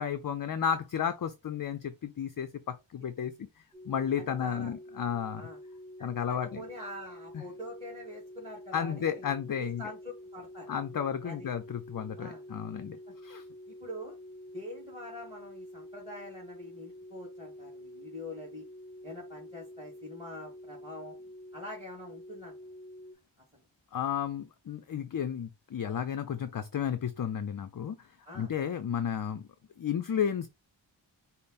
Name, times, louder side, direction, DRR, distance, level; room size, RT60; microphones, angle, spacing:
voice 1, 0.0-3.5 3.9-5.4 6.0-6.6 7.3-7.4 8.7-9.8 10.7-13.0 13.2-13.4 23.9-28.0 28.3-29.5 29.8-30.5, left 8 dB, 45° left, 0.4 m, -33 dB
sound 1, 3.7-23.1, left 1 dB, 20° left, 0.9 m, -48 dB
voice 2, 4.1-4.7 5.3-5.6 6.0-9.2 9.6-10.7 11.2-11.5 12.2-12.4 13.1-13.2 13.7-14.2 14.5-18.6 19.0-21.1 21.5-22.5 23.5-23.6 28.2-28.5, left 1 dB, 10° right, 1.8 m, -44 dB
5.4 x 2.0 x 4.0 m
wide cardioid pair, 85°, 48 cm